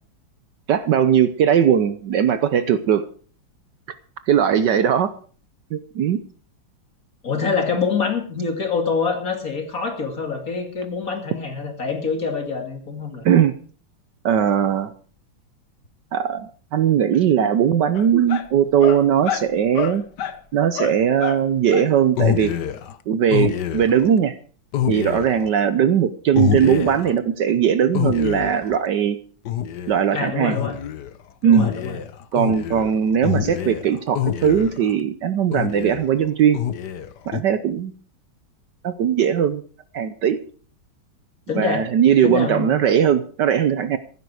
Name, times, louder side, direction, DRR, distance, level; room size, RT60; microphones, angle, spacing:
voice 1, 0.7-3.0 4.3-5.1 5.7-6.2 13.2-13.5 14.2-14.9 16.1-20.0 20.5-22.5 23.1-24.3 24.9-29.2 29.9-30.6 31.4-31.7 32.3-36.6 37.3-37.9 38.8-39.6 39.9-40.4 41.5-44.0, right 8 dB, 65° right, 12 dB, 1.3 m, -19 dB
voice 2, 7.2-13.2 30.1-30.8 31.4-32.0 41.5-41.9 42.2-42.7, left 5 dB, 40° left, 4 dB, 2.8 m, -25 dB
sound 1, 17.9-18.5 18.8-19.5 19.7-20.4 20.8-21.4 21.7-21.9 22.2-22.9 23.3-24.1 24.7-25.5 26.3-27.1 27.9-28.8 29.4-30.0 30.5-31.1 31.5-34.9 35.5-36.1 36.5-37.4, left 9 dB, 60° left, 1.4 m, -26 dB
15.0 x 12.0 x 4.8 m, 0.43 s
omnidirectional pair, 2.3 m